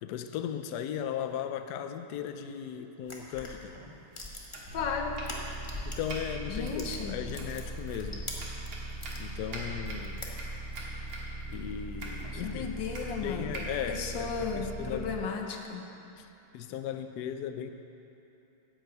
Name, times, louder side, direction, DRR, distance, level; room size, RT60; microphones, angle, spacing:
voice 1, 0.0-3.8 5.8-8.3 9.2-10.2 11.5-12.7 13.2-15.2 16.1-16.3 16.5-17.7, left 9 dB, 85° left, 8 dB, 0.9 m, -37 dB
sound 1, 3.0-6.2 6.5-9.2 9.7-10.8, left 2 dB, 20° left, 0.8 m, -43 dB
Domestic sounds home sounds, 4.4-15.0, right 1 dB, 70° right, 2.4 m, -46 dB
sound 2, 4.6-15.2, right 2 dB, 40° right, 2.2 m, -40 dB
voice 2, 4.7-5.2 6.5-7.2 12.3-15.9, left 5 dB, 65° left, 3 dB, 1.5 m, -35 dB
10.5 x 6.6 x 7.9 m, 3.0 s
omnidirectional pair, 2.3 m